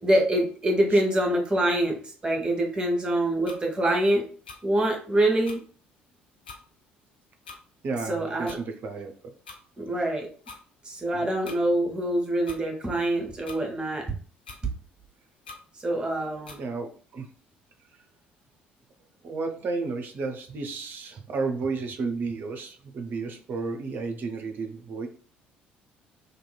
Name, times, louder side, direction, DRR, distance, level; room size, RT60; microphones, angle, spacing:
voice 1, 0.0-4.2 4.6-5.6 8.0-8.6 9.8-10.3 10.8-14.0 15.8-16.6, right 1 dB, 20° right, 0 dB, 1.0 m, -25 dB
sound 1, 3.4-3.6 4.4-4.6 5.5-5.6 6.4-6.6 7.4-7.6 8.4-8.6 9.5-9.6 10.4-10.6 11.4-11.6 12.5-12.6 13.4-13.6 14.5-14.6 15.4-15.6 16.5-16.6, left 4 dB, 80° left, 0.4 m, -43 dB
voice 2, 7.8-9.1 11.1-11.3 16.6-17.3 17.9-18.0 19.2-25.1, right 4 dB, 40° right, 5 dB, 0.6 m, -32 dB
2.9 x 2.8 x 2.2 m, 0.42 s
figure-of-eight pair, 50°, 5 cm